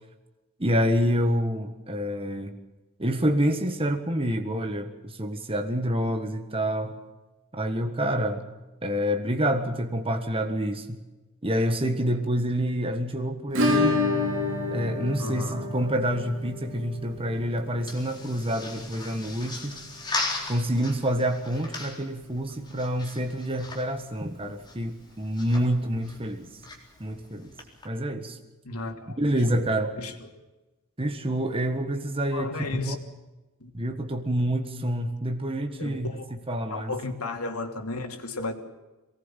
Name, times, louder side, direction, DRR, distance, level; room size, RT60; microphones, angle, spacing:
voice 1, 0.6-2.5 3.0-6.9 7.5-8.4 8.8-11.0 11.4-14.1 14.7-19.8 20.5-26.5 27.0-27.5 27.8-28.4 29.2-29.9 31.0-33.0 33.7-36.9, equal, 25° right, 5 dB, 1.6 m, -27 dB
Acoustic guitar / Strum, 13.5-22.2 22.4-22.5 22.8-22.9 23.3-23.4 25.4-25.5 26.6-26.7, left 2 dB, 60° right, 3.7 m, -30 dB
voice 2, 15.2-15.6 28.6-29.2 29.5-29.6 30.0-30.1 32.3-33.0 33.6-33.7 35.8-36.2 36.7-38.7, left 2 dB, 85° left, 4 dB, 2.8 m, -34 dB
sound 1, 16.9-27.9, left 2 dB, 20° left, 4.1 m, -39 dB
23.5 x 19.0 x 7.4 m, 1.1 s
head